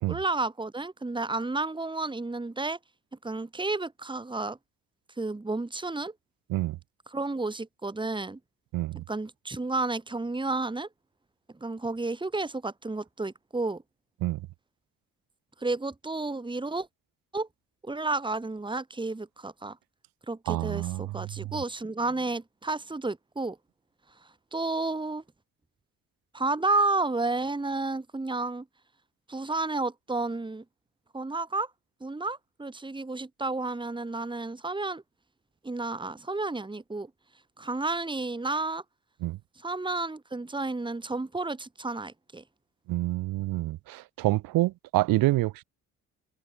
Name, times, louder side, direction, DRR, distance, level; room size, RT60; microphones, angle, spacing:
voice 1, 0.1-2.8 3.2-4.6 5.2-6.1 7.1-8.4 9.1-10.9 11.6-13.8 15.6-16.9 17.3-17.5 17.8-19.8 20.3-23.6 24.5-25.2 26.3-28.6 29.3-30.6 31.1-31.7 32.0-35.0 35.6-37.1 37.6-38.8 39.6-42.4, right 3 dB, 15° right, 2.9 m, -31 dB
voice 2, 8.7-9.0 14.2-14.4 20.5-21.6 39.2-39.4 42.9-45.6, right 18 dB, 85° right, 1.8 m, -27 dB
cardioid pair, 90°, 34 cm